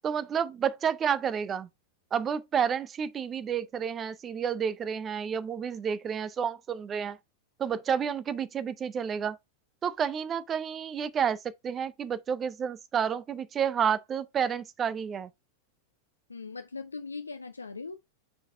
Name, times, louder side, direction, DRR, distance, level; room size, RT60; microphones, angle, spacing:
voice 1, 0.0-1.7 2.1-7.2 7.6-9.4 9.8-15.3, right 7 dB, 25° right, 0.6 m, -30 dB
voice 2, 16.3-18.0, left 4 dB, 80° left, 0.5 m, -39 dB
6.1 x 4.1 x 4.3 m
figure-of-eight pair, 90°, 0 cm